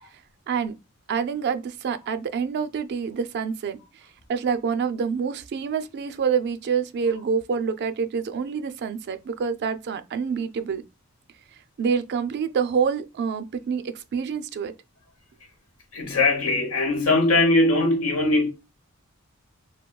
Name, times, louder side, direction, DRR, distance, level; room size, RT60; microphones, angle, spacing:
voice 1, 1.1-3.8 4.3-10.8 11.8-14.7, right 6 dB, 50° right, 0.3 m, -27 dB
voice 2, 15.9-18.5, left 2 dB, 80° left, 1.0 m, -20 dB
3.5 x 2.2 x 2.2 m
head